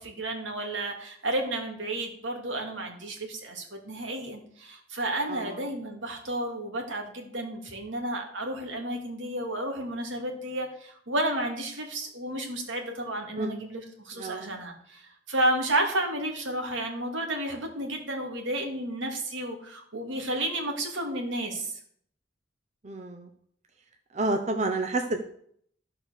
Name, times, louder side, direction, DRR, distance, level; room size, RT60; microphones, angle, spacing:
voice 1, 0.0-21.7, right 1 dB, 80° right, 3 dB, 2.4 m, -32 dB
voice 2, 5.3-5.6 13.4-13.6 14.1-14.6 22.8-23.3 24.1-25.2, right 2 dB, 40° right, 5 dB, 0.8 m, -30 dB
14.0 x 4.9 x 6.5 m, 0.65 s
head